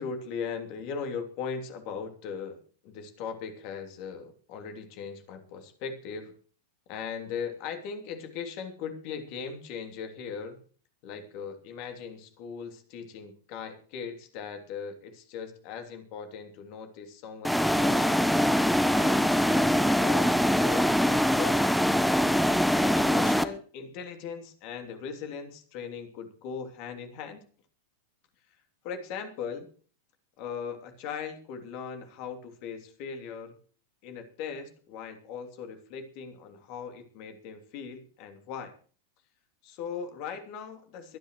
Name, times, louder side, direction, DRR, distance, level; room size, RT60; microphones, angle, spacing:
voice 1, 0.0-6.3 6.9-10.6 11.0-18.4 18.9-21.8 22.7-27.4 28.8-29.7 30.4-33.6 34.0-38.7 39.6-41.2, left 6 dB, 45° left, 6 dB, 3.0 m, -39 dB
sound 1, 17.4-23.4, equal, ahead, 1.0 m, -23 dB
24.0 x 10.0 x 3.2 m, 0.41 s
figure-of-eight pair, 90°, 0 cm